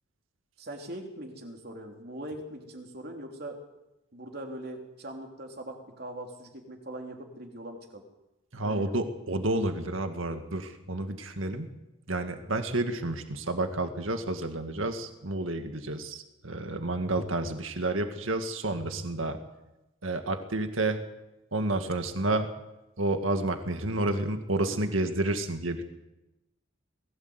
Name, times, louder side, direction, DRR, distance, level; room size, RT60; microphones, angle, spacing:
voice 1, 0.6-3.6 4.1-8.0 8.6-9.0, right 1 dB, 50° right, 2 dB, 3.4 m, -41 dB
voice 2, 8.5-11.7 12.1-19.4 20.0-21.0 21.5-22.5 23.0-25.8, right 2 dB, 75° right, 7 dB, 1.9 m, -30 dB
21.0 x 16.5 x 8.1 m, 0.96 s
head